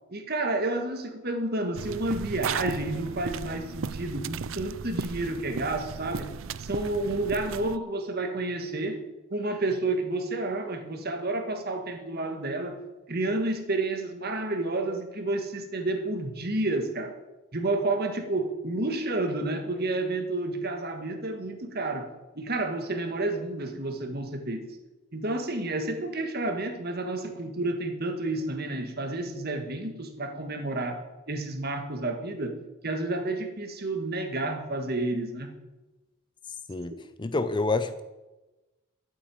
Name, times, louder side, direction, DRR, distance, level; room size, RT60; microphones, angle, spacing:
voice 1, 0.1-6.3 6.6-9.0 9.3-12.8 13.1-17.1 17.5-22.1 22.4-24.7 25.1-32.5 32.8-35.5, right 2 dB, 45° right, 6 dB, 1.8 m, -30 dB
sound 1, 1.7-7.8, right 6 dB, 65° right, 0.5 m, -36 dB
voice 2, 37.2-38.0, left 3 dB, 20° left, 11 dB, 0.5 m, -27 dB
12.5 x 8.5 x 8.7 m, 1.1 s
head